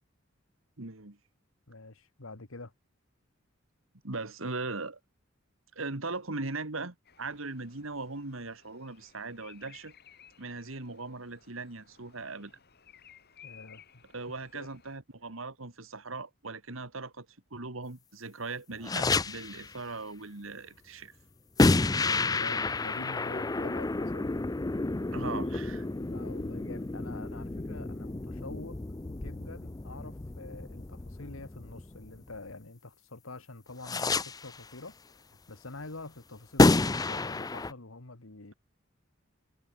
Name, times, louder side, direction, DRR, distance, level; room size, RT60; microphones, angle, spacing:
voice 1, 0.8-1.2 4.0-5.0 5.8-9.9 10.4-12.5 14.1-21.1 25.1-25.9, right 3 dB, 75° right, 2.2 m, -39 dB
voice 2, 1.7-2.7 13.4-14.0 14.5-14.7 21.9-24.3 25.9-28.8 29.1-38.5, left 3 dB, 75° left, 1.8 m, -46 dB
Bird vocalization bird call bird song, 7.0-15.0, left 8 dB, 50° left, 4.4 m, -58 dB
sound 1, 18.8-19.7 21.6-32.5 33.8-34.6 36.6-37.7, left 3 dB, 20° left, 0.5 m, -29 dB
head